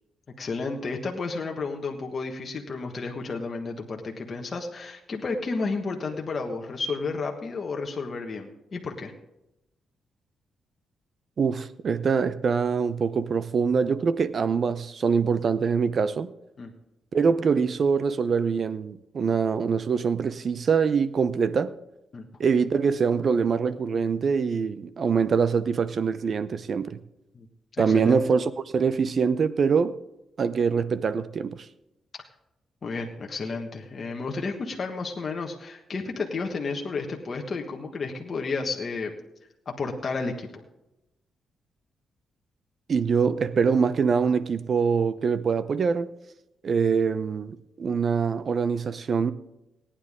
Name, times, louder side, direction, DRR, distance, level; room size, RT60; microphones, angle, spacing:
voice 1, 0.4-9.1 16.6-16.7 22.1-22.2 27.3-27.5 27.8-28.3 32.8-39.1 39.6-40.6, left 4 dB, 40° left, 1.4 m, -32 dB
voice 2, 11.4-16.3 17.1-21.7 22.4-27.0 27.8-30.0 30.4-31.7 42.9-46.1 46.6-49.3, right 5 dB, 50° right, 0.7 m, -24 dB
18.0 x 10.0 x 3.7 m
cardioid pair, 105°, 0 cm